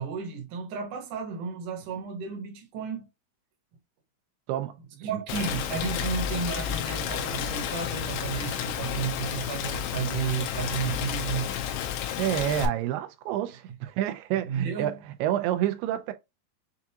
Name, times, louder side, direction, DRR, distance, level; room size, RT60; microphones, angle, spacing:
voice 1, 0.0-3.1 5.0-11.5 14.5-15.0, right 6 dB, 65° right, 2.3 m, -32 dB
voice 2, 4.5-5.2 12.2-16.1, right 12 dB, 90° right, 2.6 m, -29 dB
Rain, 5.3-12.7, left 9 dB, 90° left, 2.7 m, -31 dB
7.0 x 2.4 x 2.8 m
omnidirectional pair, 4.5 m